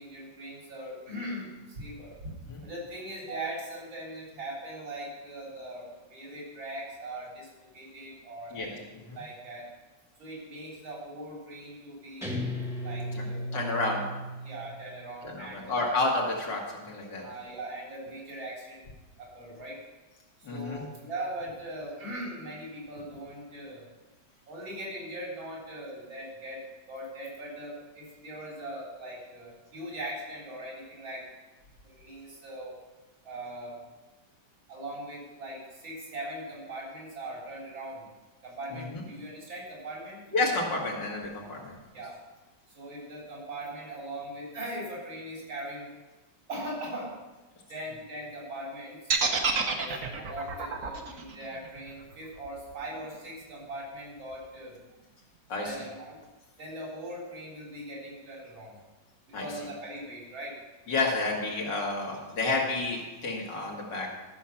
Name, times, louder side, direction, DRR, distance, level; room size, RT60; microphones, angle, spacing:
voice 1, 0.0-2.3 2.6-7.5 7.7-8.8 9.1-9.7 10.2-12.4 12.8-13.5 14.4-15.8 17.2-18.9 19.2-19.8 20.5-23.9 24.5-31.2 31.8-32.8 33.2-33.8 34.7-38.1 38.4-40.2 41.9-42.2 42.7-45.9 46.5-47.1 47.7-49.0 49.3-54.8 55.6-56.2 56.6-58.8 59.3-60.5, right 1 dB, 80° right, -4 dB, 4.5 m, -40 dB
Guitar, 12.2-14.8, left 1 dB, ahead, 1.2 m, -35 dB
voice 2, 13.5-14.1 15.2-17.2 20.4-20.8 38.7-39.0 40.3-41.8 55.5-55.8 59.3-59.5 60.9-64.1, left 2 dB, 65° left, -2 dB, 2.6 m, -30 dB
sound 1, 49.1-53.1, right 4 dB, 50° right, 1.2 m, -30 dB
12.5 x 6.5 x 5.8 m, 1.2 s
omnidirectional pair, 2.1 m